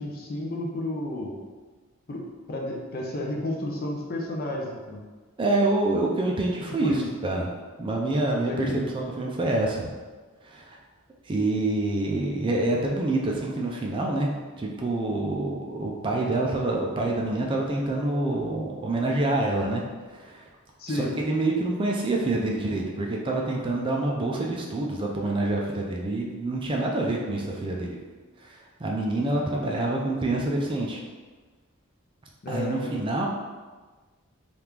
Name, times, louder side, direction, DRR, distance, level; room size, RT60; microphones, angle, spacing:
voice 1, 0.0-1.4 2.1-5.0 6.8-7.0 8.5-8.8 20.8-21.2 32.4-33.0, left 1 dB, 45° left, -1 dB, 0.5 m, -31 dB
voice 2, 5.4-7.5 7.8-9.9 10.4-10.8 11.3-14.3 14.6-19.8 20.1-20.5 20.9-28.0 28.4-31.0 32.5-33.3, right 2 dB, 25° right, -1 dB, 0.3 m, -27 dB
2.9 x 2.4 x 3.5 m, 1.3 s
head